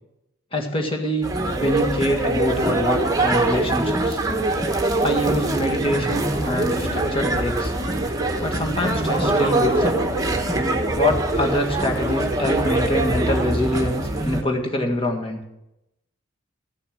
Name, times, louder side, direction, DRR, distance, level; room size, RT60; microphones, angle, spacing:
voice 1, 0.5-1.3 1.6-4.2 5.0-7.7 8.4-10.0 11.0-15.4, equal, 30° left, 2 dB, 1.8 m, -24 dB
sound 1, 1.2-14.4, right 2 dB, 20° right, 1.2 m, -23 dB
13.5 x 6.7 x 8.8 m, 0.89 s
head